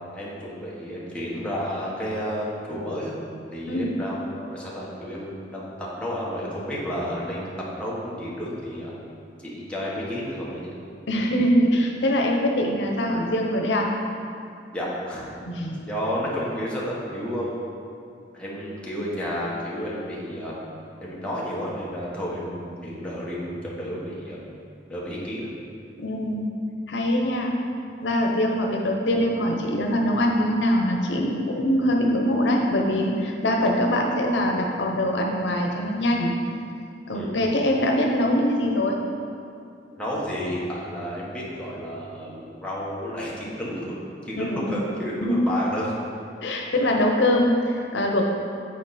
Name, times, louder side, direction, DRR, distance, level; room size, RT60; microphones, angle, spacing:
voice 1, 0.1-3.2 3.5-8.9 9.4-10.7 14.7-15.2 15.9-17.5 18.3-20.6 21.0-24.4 24.9-25.5 37.1-37.3 39.9-44.0 44.2-45.9, equal, 5° left, -7 dB, 1.3 m, -31 dB
voice 2, 11.1-13.9 15.5-15.8 26.0-26.4 26.9-27.5 28.0-36.3 37.1-39.0 44.3-44.7 45.2-45.4 46.4-48.2, left 1 dB, 85° left, 1 dB, 0.8 m, -23 dB
8.5 x 4.6 x 4.2 m, 2.5 s
head